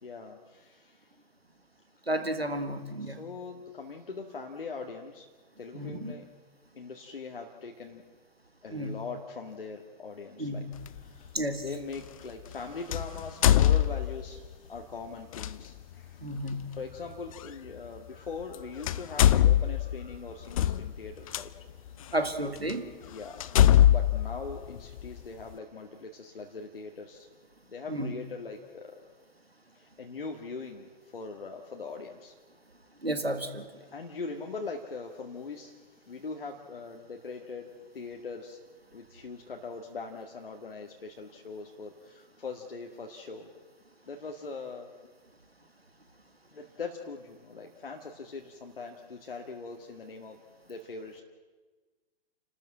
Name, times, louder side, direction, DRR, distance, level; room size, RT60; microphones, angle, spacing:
voice 1, 0.0-1.1 3.0-5.3 5.6-6.3 6.7-8.0 8.6-10.6 10.9-11.4 11.6-16.3 16.7-21.5 22.7-27.3 27.7-29.0 29.7-32.4 33.9-35.8 36.1-38.6 38.9-43.5 44.1-44.9 46.5-50.4 50.7-51.2, left 4 dB, 70° left, 2 dB, 1.9 m, -41 dB
voice 2, 2.1-3.2 5.7-6.1 8.7-9.0 10.4-10.7 11.3-11.6 16.2-16.7 22.1-22.9 27.9-28.1 33.0-33.7, right 1 dB, 90° right, 9 dB, 1.9 m, -32 dB
sound 1, 10.8-11.0 12.9-14.4 15.3-15.5 17.4-17.5 18.4-18.6 18.8-21.4 22.1-22.2 22.7-22.8 23.4-25.2, left 12 dB, 35° left, 0.6 m, -22 dB
30.0 x 13.0 x 7.5 m, 1.3 s
figure-of-eight pair, 120°, 30 cm